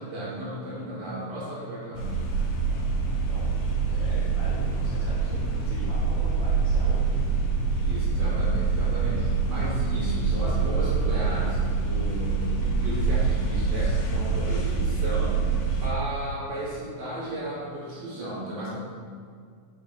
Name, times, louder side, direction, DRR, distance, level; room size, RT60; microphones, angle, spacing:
voice 1, 0.0-2.2 3.9-4.1 7.7-15.5 15.8-18.8, right 1 dB, 65° right, -8 dB, 3.3 m, -34 dB
sound 1, 1.9-15.9, right 4 dB, 80° left, 1.4 m, -25 dB
voice 2, 2.3-3.5 4.0-7.2, equal, 45° right, -12 dB, 1.0 m, -42 dB
6.1 x 5.6 x 3.6 m, 2.1 s
omnidirectional pair, 4.1 m